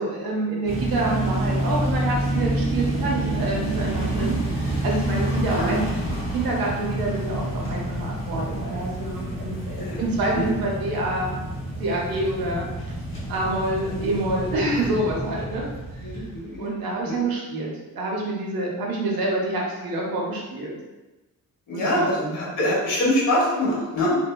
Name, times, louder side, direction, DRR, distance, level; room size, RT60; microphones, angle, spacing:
voice 1, 0.0-5.9 6.3-11.3 11.8-12.7 13.3-15.6 16.6-20.7 21.7-22.4, right 2 dB, 80° right, -3 dB, 0.7 m, -27 dB
sound 1, 0.7-16.6, right 1 dB, 35° left, 0.7 m, -28 dB
voice 2, 16.0-16.7 17.0-17.2 21.7-24.1, left 1 dB, 60° left, -5 dB, 0.9 m, -24 dB
2.6 x 2.2 x 2.2 m, 1.1 s
wide cardioid pair, 145°, 35 cm